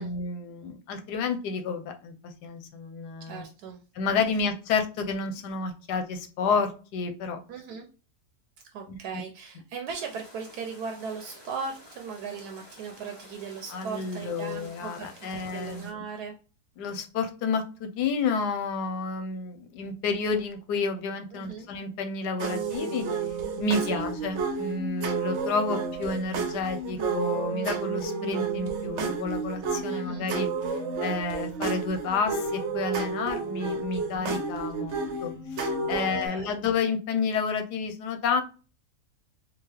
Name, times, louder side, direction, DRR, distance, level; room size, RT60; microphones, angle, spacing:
voice 1, 0.0-3.4 3.9-7.4 8.9-9.0 13.7-16.0 16.8-23.1 23.6-30.5 31.0-38.4, left 4 dB, 85° left, 7 dB, 1.2 m, -30 dB
voice 2, 3.3-3.8 7.5-7.9 8.7-16.4 21.3-21.7 23.9-24.0 29.9-30.3 35.9-36.6, right 5 dB, 80° right, 3 dB, 1.1 m, -38 dB
sound 1, 9.9-15.9, left 1 dB, 20° left, 0.9 m, -51 dB
sound 2, 22.4-36.3, right 4 dB, 55° right, 0.8 m, -31 dB
3.8 x 2.4 x 3.2 m, 0.36 s
omnidirectional pair, 1.7 m